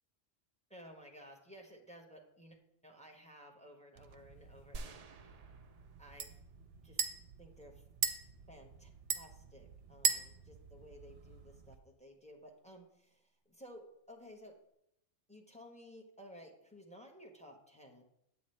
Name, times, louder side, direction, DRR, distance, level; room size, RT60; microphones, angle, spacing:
voice 1, 0.7-5.0 6.0-6.4 6.8-7.0 7.4-7.8 8.5-8.9 9.1-14.6 15.3-18.0, equal, 5° left, 0 dB, 1.0 m, -55 dB
sound 1, 4.0-11.8, right 6 dB, 60° right, 0.8 m, -41 dB
sound 2, 4.7-6.7 7.0-7.1, right 3 dB, 80° right, 0.3 m, -50 dB
8.5 x 8.4 x 3.2 m, 0.78 s
omnidirectional pair, 1.3 m